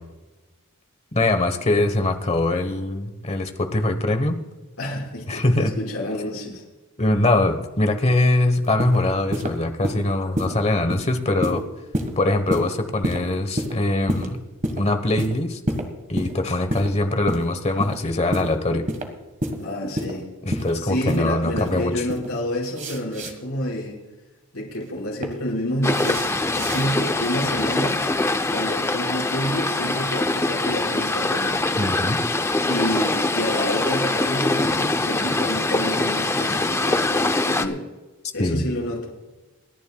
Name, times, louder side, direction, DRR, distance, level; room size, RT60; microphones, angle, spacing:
voice 1, 1.1-4.4 5.3-5.7 7.0-11.6 12.2-14.4 14.8-15.6 16.1-18.9 20.4-22.0 31.8-32.2 38.4-38.6, left 2 dB, 30° left, 7 dB, 1.1 m, -22 dB
voice 2, 4.8-6.6 19.6-20.3 20.8-24.0 24.5-26.3 26.5-28.0 28.5-31.6 32.7-37.8 38.3-39.1, equal, 70° left, -3 dB, 5.1 m, -28 dB
sound 1, 8.6-9.0 9.3-9.5 9.8-10.0 10.4-10.5 10.9-11.1 11.4-11.6 11.9-12.1 12.5-12.7 13.0-13.2 13.6-13.7 14.1-14.3 14.6-14.8 15.2-15.3 15.7-15.8 16.2-16.3 16.7-16.9 17.3-17.5 17.8-18.0 18.3-18.5 18.9-19.1 19.4-19.6 20.0-20.1 20.5-20.7 21.1-21.2 21.6-21.8 22.1-22.3 22.6-23.3 24.7-25.3 25.9-26.9, equal, 35° right, 1.6 m, -27 dB
sound 2, 25.8-37.7, left 2 dB, 10° left, 0.5 m, -23 dB
29.0 x 10.5 x 2.3 m, 1.2 s
head